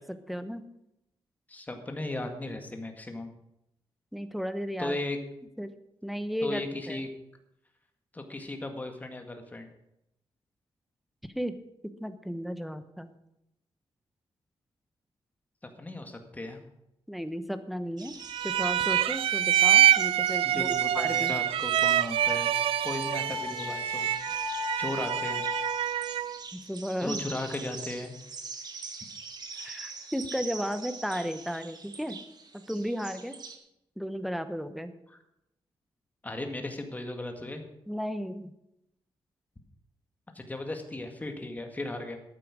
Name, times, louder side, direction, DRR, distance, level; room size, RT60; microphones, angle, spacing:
voice 1, 0.3-0.6 4.1-5.0 5.6-5.7 6.0-6.6 6.9-7.0 11.2-11.5 12.0-13.1 17.1-18.2 18.4-20.7 20.9-21.3 26.5-27.2 29.6-32.2 32.5-33.4 34.0-34.9 37.9-38.5, equal, ahead, 10 dB, 1.0 m, -34 dB
voice 2, 1.5-3.3 4.8-5.2 6.4-7.1 8.1-9.7 15.8-16.6 20.4-22.5 22.8-24.1 24.8-25.4 27.0-28.2 29.6-29.9 36.2-37.6 40.4-42.2, left 2 dB, 15° left, 5 dB, 1.9 m, -36 dB
sound 1, 18.0-33.6, right 4 dB, 45° right, 1.8 m, -44 dB
sound 2, 18.3-26.4, right 11 dB, 85° right, 0.4 m, -26 dB
Wind instrument woodwind instrument, 22.2-26.0, left 1 dB, 40° left, 3.2 m, -36 dB
13.0 x 9.0 x 6.2 m, 0.84 s
wide cardioid pair, 135°, 9 cm